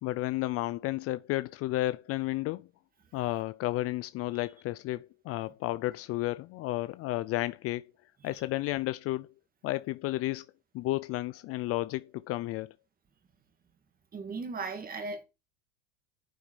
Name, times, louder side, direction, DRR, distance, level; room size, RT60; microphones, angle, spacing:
voice 1, 0.0-2.6 3.1-7.8 8.2-9.3 9.6-10.4 10.7-12.7, left 17 dB, 40° left, 0.5 m, -32 dB
voice 2, 14.1-15.2, right 4 dB, 20° right, 2.0 m, -38 dB
9.4 x 8.5 x 4.7 m
supercardioid pair, 125°, 38 cm